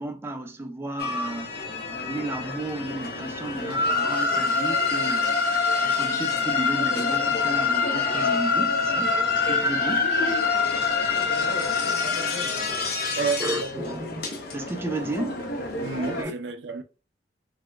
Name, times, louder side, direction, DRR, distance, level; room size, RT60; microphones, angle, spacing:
voice 1, 0.0-10.1 13.4-14.2 14.5-15.4 16.2-16.3, right 1 dB, 15° right, 0.3 m, -33 dB
sound 1, 1.0-16.2, left 4 dB, 55° left, 0.6 m, -26 dB
voice 2, 13.2-13.8 15.8-16.8, right 5 dB, 75° right, 0.5 m, -30 dB
3.9 x 2.1 x 2.2 m
head